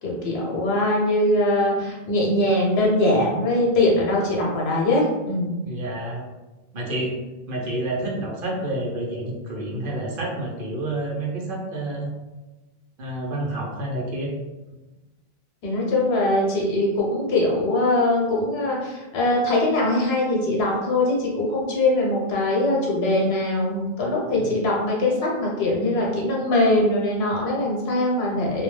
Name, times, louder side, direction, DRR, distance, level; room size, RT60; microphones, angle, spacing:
voice 1, 0.0-5.5 15.6-28.6, left 1 dB, 75° left, -3 dB, 0.9 m, -22 dB
voice 2, 5.6-6.3 6.7-7.2 7.5-12.1 13.0-14.3 24.3-24.5, right 1 dB, 60° right, -1 dB, 0.8 m, -29 dB
2.3 x 2.1 x 3.1 m, 1.1 s
omnidirectional pair, 1.1 m